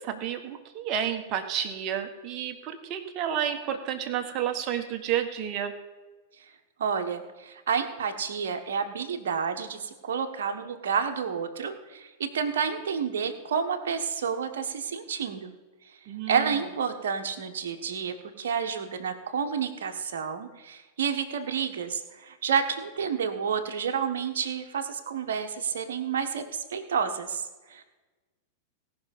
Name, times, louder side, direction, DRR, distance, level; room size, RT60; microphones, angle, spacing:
voice 1, 0.0-5.7 16.1-16.6, right 9 dB, 40° right, 5 dB, 1.6 m, -31 dB
voice 2, 6.8-15.5 16.3-27.8, right 6 dB, 65° right, 5 dB, 1.4 m, -30 dB
18.0 x 6.1 x 5.4 m, 1.2 s
figure-of-eight pair, 95°, 0 cm